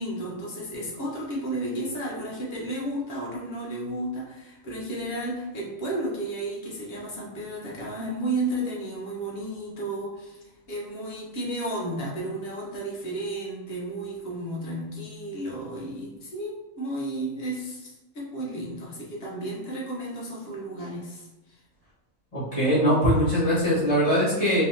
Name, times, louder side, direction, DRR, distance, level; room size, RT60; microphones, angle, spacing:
voice 1, 0.0-21.6, right 1 dB, 50° left, -4 dB, 1.2 m, -33 dB
voice 2, 22.3-24.6, equal, 25° left, -11 dB, 1.4 m, -22 dB
3.9 x 2.9 x 2.7 m, 1.0 s
omnidirectional pair, 1.4 m